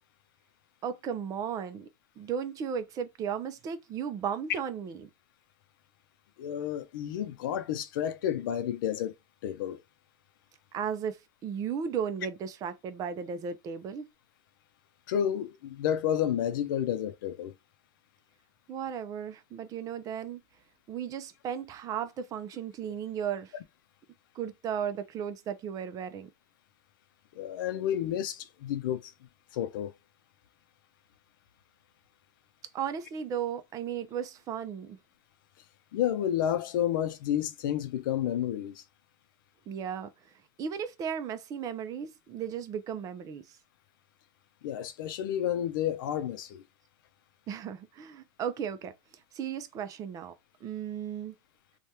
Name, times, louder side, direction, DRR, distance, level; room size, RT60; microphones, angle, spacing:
voice 1, 0.8-1.9 2.2-5.1 10.7-14.1 18.7-20.4 20.9-23.5 24.3-26.3 32.7-35.0 39.7-40.1 40.6-43.6 47.5-48.9 49.3-50.3 50.6-51.3, right 8 dB, 35° right, 0.5 m, -35 dB
voice 2, 6.4-9.1 9.4-9.8 15.1-17.5 27.4-29.1 29.5-29.9 35.9-38.8 44.6-46.6, left 10 dB, 85° left, 0.6 m, -30 dB
3.2 x 2.3 x 2.8 m
supercardioid pair, 135°, 11 cm